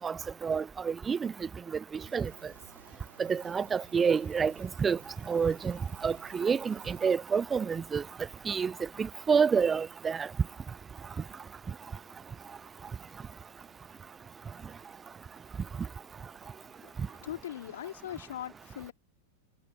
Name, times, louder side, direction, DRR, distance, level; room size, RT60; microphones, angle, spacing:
voice 1, 0.0-1.5 1.9-2.3 3.2-5.0 5.3-8.0 8.5-8.7 9.0-10.3, right 6 dB, 20° right, 0.4 m, -28 dB
sound 1, 1.9-7.1, right 5 dB, 75° right, 2.8 m, -57 dB
voice 2, 16.8-18.9, left 12 dB, 60° left, 2.9 m, -41 dB
figure-of-eight pair, 90°, 0 cm